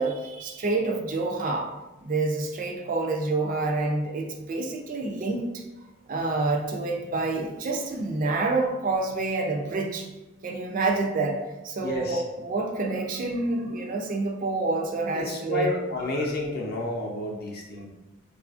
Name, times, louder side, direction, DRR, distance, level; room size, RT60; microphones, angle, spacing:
voice 1, 0.0-1.7 2.0-5.6 6.1-10.1 10.4-11.4 11.6-15.7, right 3 dB, 40° right, 2 dB, 0.3 m, -28 dB
voice 2, 11.8-12.2 15.1-17.9, left 2 dB, 45° left, -1 dB, 0.5 m, -30 dB
3.9 x 2.4 x 2.4 m, 1.0 s
head